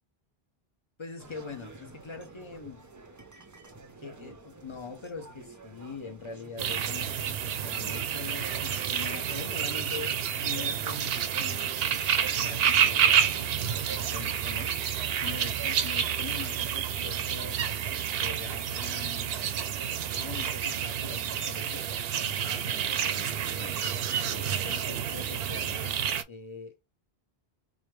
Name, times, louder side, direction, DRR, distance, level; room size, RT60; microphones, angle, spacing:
voice 1, 1.0-2.8 4.0-11.9 12.4-19.6 20.1-21.8 22.3-23.8 24.2-26.8, left 5 dB, 35° left, 0.6 m, -43 dB
sound 1, 1.2-14.3, right 3 dB, 25° right, 0.4 m, -49 dB
sound 2, 6.6-26.2, right 9 dB, 70° right, 0.8 m, -29 dB
4.9 x 2.1 x 3.1 m
omnidirectional pair, 1.0 m